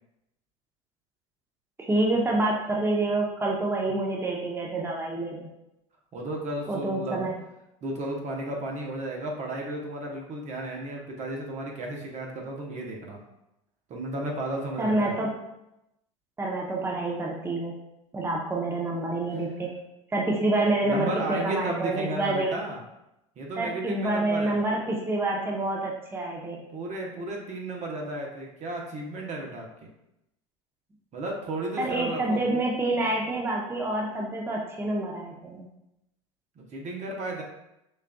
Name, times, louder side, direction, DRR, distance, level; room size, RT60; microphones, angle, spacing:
voice 1, 1.8-5.5 6.7-7.3 14.8-15.3 16.4-17.7 18.1-19.7 20.1-22.5 23.6-26.6 31.8-35.7, right 2 dB, 15° right, -2 dB, 0.8 m, -27 dB
voice 2, 6.1-7.3 7.8-13.2 13.9-15.2 20.8-22.8 23.4-24.6 26.7-29.7 31.1-32.4 36.7-37.4, right 2 dB, 40° right, 0 dB, 1.0 m, -33 dB
6.4 x 2.5 x 2.3 m, 0.87 s
hypercardioid pair, 85°, 18 cm